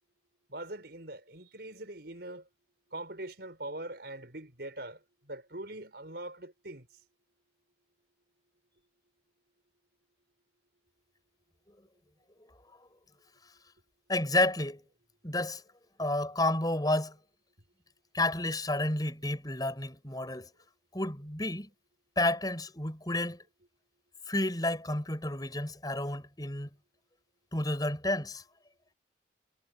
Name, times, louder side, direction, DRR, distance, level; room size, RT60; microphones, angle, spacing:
voice 1, 0.5-2.5 2.9-6.9, right 1 dB, 60° right, 5.7 m, -42 dB
voice 2, 14.1-14.8 15.2-15.6 16.0-17.1 18.1-20.5 20.9-21.7 22.2-23.4 24.3-26.7 27.5-28.4, left 1 dB, 20° left, 6.8 m, -30 dB
head